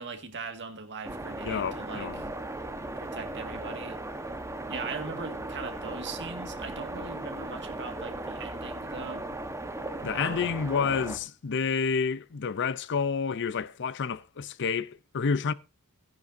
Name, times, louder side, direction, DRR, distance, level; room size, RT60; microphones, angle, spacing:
voice 1, 0.0-2.3 3.0-4.0 4.7-9.2 10.1-10.5, right 4 dB, 55° right, 1.9 m, -40 dB
sound 1, 1.0-11.2, right 2 dB, 15° right, 1.2 m, -37 dB
voice 2, 1.4-2.2 10.0-15.5, left 5 dB, 55° left, 0.6 m, -29 dB
16.0 x 10.5 x 2.7 m
head